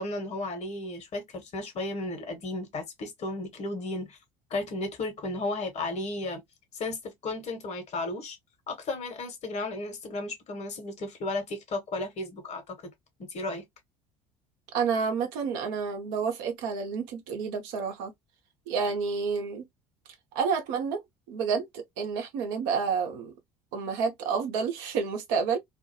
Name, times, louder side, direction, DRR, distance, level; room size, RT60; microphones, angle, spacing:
voice 1, 0.0-4.2 4.5-6.4 6.7-8.4 8.7-12.9 13.3-13.6, left 2 dB, 40° left, 1.2 m, -34 dB
voice 2, 14.7-18.1 18.7-19.6 20.3-21.0 21.3-23.3 23.7-25.6, right 5 dB, 65° right, 0.9 m, -29 dB
2.5 x 2.3 x 2.7 m
figure-of-eight pair, 60°, 17 cm